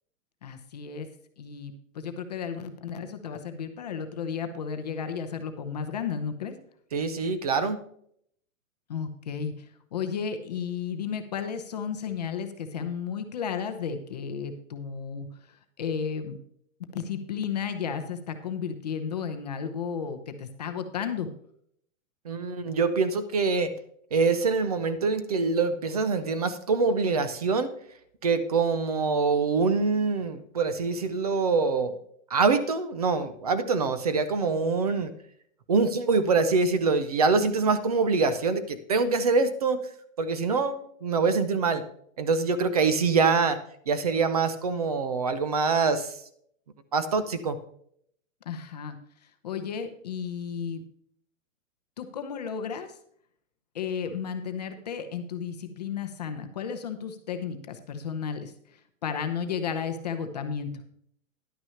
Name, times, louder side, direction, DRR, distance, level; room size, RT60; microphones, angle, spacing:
voice 1, 0.4-1.1 1.4-6.5 8.9-9.7 9.9-16.4 16.9-21.3 48.5-49.0 49.4-50.8 52.0-52.9 53.7-60.7, left 7 dB, 30° left, 7 dB, 0.7 m, -33 dB
voice 2, 6.9-7.8 22.3-23.7 24.1-27.7 28.2-31.9 32.3-35.1 35.7-39.8 40.2-41.8 42.2-43.6 43.9-46.1 46.9-47.6, right 4 dB, 30° right, 12 dB, 0.6 m, -25 dB
11.0 x 6.0 x 5.6 m, 0.66 s
hypercardioid pair, 180°, 40 cm